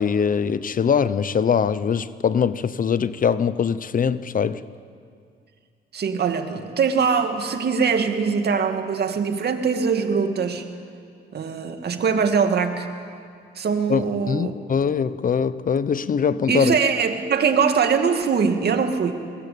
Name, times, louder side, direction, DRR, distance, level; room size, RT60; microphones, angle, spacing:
voice 1, 0.0-4.6 13.9-16.7, left 7 dB, 45° left, 15 dB, 0.8 m, -22 dB
voice 2, 5.9-10.6 11.3-12.9 13.6-14.5 16.5-19.1, right 6 dB, 55° right, 6 dB, 2.4 m, -22 dB
24.0 x 20.5 x 8.7 m, 2.3 s
cardioid pair, 90°, 20 cm